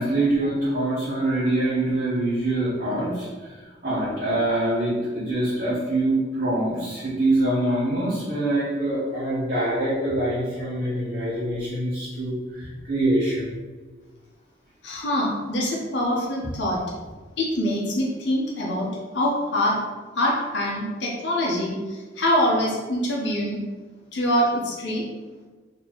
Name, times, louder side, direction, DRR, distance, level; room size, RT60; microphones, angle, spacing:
voice 1, 0.0-3.5 3.8-13.6, right 1 dB, 45° right, -12 dB, 1.0 m, -24 dB
voice 2, 14.8-16.8 17.4-19.8 20.1-23.6 24.1-25.0, left 1 dB, 70° left, -4 dB, 0.7 m, -24 dB
4.3 x 2.7 x 2.9 m, 1.4 s
head